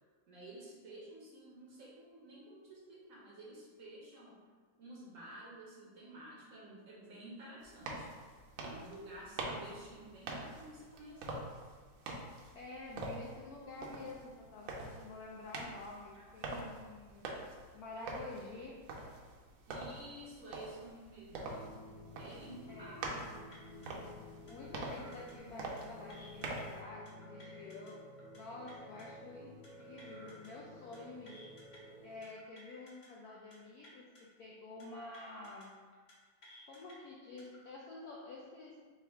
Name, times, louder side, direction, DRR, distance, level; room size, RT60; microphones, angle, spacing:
voice 1, 0.3-4.4 4.8-8.2 8.6-11.5 16.1-16.2 19.7-21.7 22.2-23.3, right 1 dB, 60° right, -5 dB, 0.9 m, -52 dB
sound 1, 7.6-26.8, right 2 dB, 85° right, 1.4 m, -45 dB
voice 2, 12.5-17.3 17.7-18.7 22.7-23.1 24.5-28.1 28.3-31.4 32.0-35.8 36.7-38.9, left 2 dB, 85° left, -3 dB, 0.8 m, -49 dB
sound 2, 21.3-32.2, left 1 dB, 35° right, 0.6 m, -53 dB
sound 3, 23.0-23.2 23.5-23.9 24.5-25.3 25.6-25.8 26.1-26.6 27.1-27.9 28.2-28.4 28.7-29.0 29.6-30.5 30.8-31.0 31.3-31.8 32.2-33.1 33.3-33.6 33.8-34.2 34.8-35.7 35.9-36.1 36.4-36.9 37.4-37.6, equal, 55° left, 0.7 m, -58 dB
4.5 x 2.5 x 3.3 m, 1.5 s
omnidirectional pair, 2.1 m